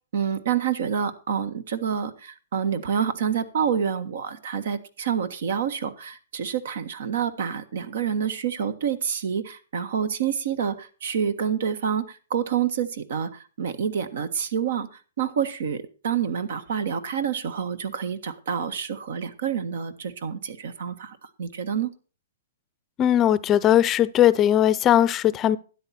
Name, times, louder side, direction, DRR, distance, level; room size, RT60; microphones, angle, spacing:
voice 1, 0.1-14.9 15.2-21.9, right 7 dB, 70° right, 1.5 m, -28 dB
voice 2, 23.0-25.6, left 11 dB, 25° left, 0.6 m, -19 dB
13.0 x 9.7 x 4.3 m
hypercardioid pair, 135°, 0 cm